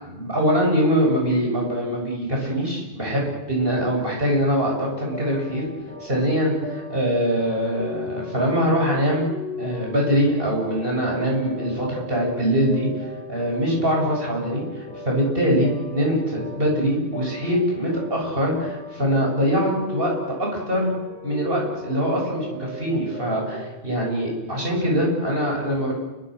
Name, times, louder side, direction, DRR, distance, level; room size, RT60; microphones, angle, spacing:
voice 1, 0.0-5.7 6.0-9.3 9.6-12.9 13.3-20.1 20.4-20.9 21.2-25.9, equal, 60° right, -1 dB, 8.4 m, -23 dB
sound 1, 4.6-23.7, left 1 dB, 10° left, 6.5 m, -37 dB
29.0 x 25.5 x 6.7 m, 1.1 s
omnidirectional pair, 1.1 m